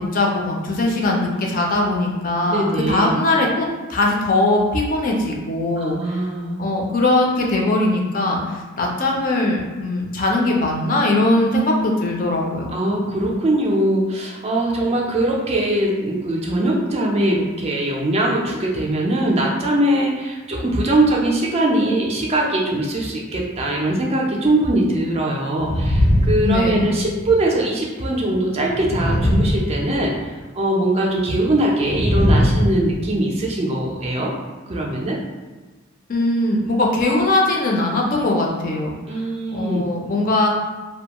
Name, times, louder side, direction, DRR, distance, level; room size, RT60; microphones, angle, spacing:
voice 1, 0.0-6.2 6.6-12.7 26.4-27.0 36.1-39.2 39.5-40.5, left 2 dB, 40° left, -1 dB, 0.4 m, -20 dB
voice 2, 0.9-1.6 2.5-3.1 5.8-6.6 11.3-12.3 12.7-34.3 34.7-35.2 39.1-39.8, right 1 dB, 30° right, -2 dB, 0.3 m, -21 dB
sound 1, 25.6-27.2 28.6-30.3 31.8-33.1, equal, 85° left, 0.8 m, -19 dB
2.4 x 2.2 x 2.8 m, 1.3 s
head